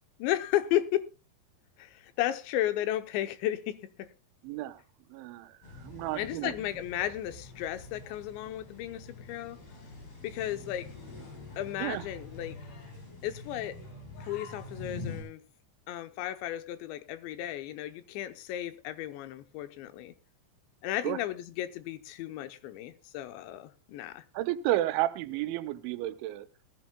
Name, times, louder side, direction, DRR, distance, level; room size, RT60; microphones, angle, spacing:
voice 1, 0.2-1.0 1.8-4.1 6.2-9.6 10.2-10.9 11.6-12.6 13.2-13.8 14.2-15.4 15.9-20.1 20.8-24.2, left 13 dB, 80° left, 3.0 m, -34 dB
voice 2, 4.4-4.8 5.1-5.5 5.8-6.5 11.8-12.0 21.0-21.2 24.3-26.5, right 14 dB, 90° right, 3.2 m, -31 dB
sound 1, 5.6-15.2, left 3 dB, 60° left, 6.3 m, -45 dB
19.5 x 14.5 x 2.2 m
omnidirectional pair, 5.2 m